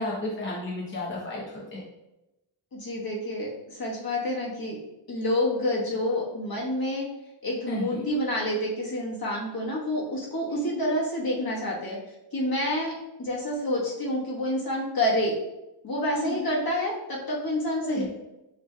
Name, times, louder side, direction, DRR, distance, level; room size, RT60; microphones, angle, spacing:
voice 1, 0.0-1.4 1.7-1.8 7.7-8.1 10.5-10.8 16.1-16.4 17.8-18.0, left 1 dB, 25° left, -5 dB, 0.8 m, -32 dB
voice 2, 2.7-4.8 5.1-7.0 7.4-12.0 12.3-12.9 13.2-15.3 15.8-18.1, left 1 dB, 55° left, -4 dB, 1.3 m, -28 dB
7.2 x 3.2 x 2.2 m, 0.96 s
wide cardioid pair, 150°, 44 cm